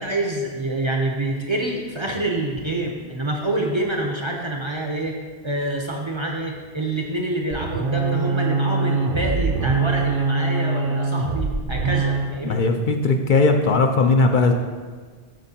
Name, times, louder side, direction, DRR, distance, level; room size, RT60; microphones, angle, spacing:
voice 1, 0.0-5.2 5.4-12.7, right 2 dB, 35° right, 0 dB, 0.5 m, -26 dB
sound 1, 7.5-12.4, right 4 dB, 60° right, 0.8 m, -23 dB
voice 2, 12.4-14.5, left 3 dB, 60° left, 4 dB, 0.6 m, -18 dB
12.5 x 4.4 x 2.8 m, 1.5 s
omnidirectional pair, 1.0 m